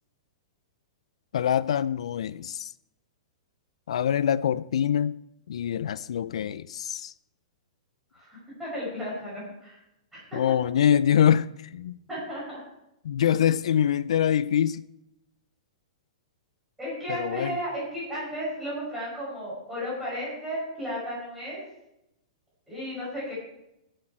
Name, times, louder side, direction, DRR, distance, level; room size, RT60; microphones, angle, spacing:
voice 1, 1.3-2.7 3.9-5.2 5.5-7.1 10.3-12.0 13.0-14.8 17.1-17.6, left 9 dB, 70° left, 0.4 m, -24 dB
voice 2, 8.1-9.8 10.1-10.2 12.1-12.6 16.8-21.6 22.7-23.3, equal, 5° right, 5.2 m, -34 dB
20.0 x 7.5 x 4.4 m
hypercardioid pair, 180°, 3 cm